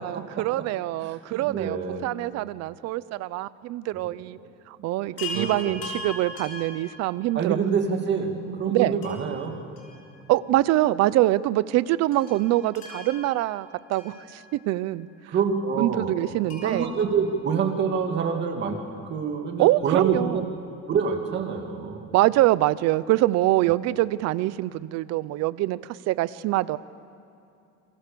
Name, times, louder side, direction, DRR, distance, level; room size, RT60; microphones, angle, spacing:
voice 1, 0.0-4.4 4.7-7.6 8.1-9.0 10.3-15.1 15.8-16.9 19.6-20.5 22.1-25.8 26.1-26.8, right 16 dB, 60° right, 17 dB, 0.7 m, -24 dB
voice 2, 1.3-2.0 4.2-4.3 5.0-5.7 7.3-9.6 15.3-16.1 16.6-18.8 19.1-20.4 20.9-22.1, right 6 dB, 35° right, 3 dB, 2.5 m, -26 dB
Chime, 5.2-7.6 9.0-10.6 10.8-10.9 12.1-14.8 16.5-18.1 19.7-19.8 20.0-20.1, left 2 dB, 60° left, 5.2 m, -41 dB
28.0 x 22.5 x 6.9 m, 2.6 s
cardioid pair, 175°, 30 cm